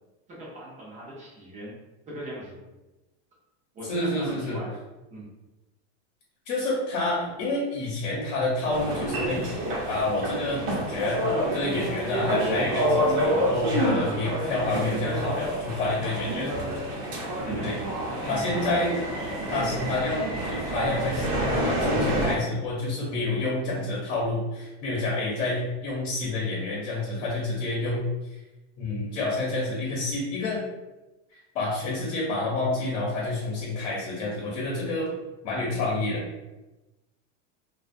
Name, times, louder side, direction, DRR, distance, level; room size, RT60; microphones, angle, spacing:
voice 1, 0.3-1.8 2.1-2.6 3.7-4.8 5.1-5.3 17.4-17.6 18.2-18.4, right 1 dB, 20° right, -4 dB, 0.5 m, -39 dB
voice 2, 3.9-4.6 6.5-16.5 17.5-17.8 18.2-18.9 19.5-28.4 28.8-30.7 31.3-35.1 35.4-36.3, left 2 dB, 60° left, -4 dB, 0.8 m, -29 dB
sound 1, 8.7-22.3, equal, 65° right, 0.9 m, -28 dB
2.4 x 2.3 x 2.5 m, 1.1 s
supercardioid pair, 160°, 36 cm